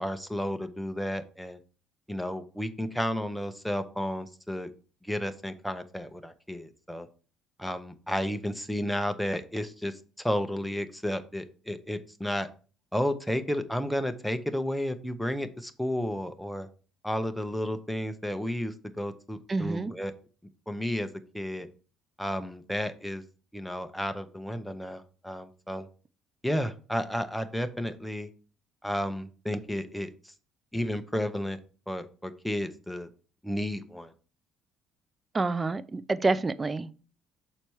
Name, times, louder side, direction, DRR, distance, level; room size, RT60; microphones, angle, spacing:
voice 1, 0.0-1.6 2.1-4.7 5.0-7.1 7.6-12.5 12.9-16.7 17.0-20.1 20.7-21.1 21.3-21.7 22.2-23.2 23.5-25.9 26.4-28.3 28.8-30.3 30.7-31.6 31.9-33.1 33.4-34.1, equal, ahead, 0.8 m, -32 dB
voice 2, 19.5-19.9 35.3-36.9, right 3 dB, 20° right, 0.4 m, -28 dB
6.8 x 4.3 x 4.7 m
cardioid pair, 105°, 0 cm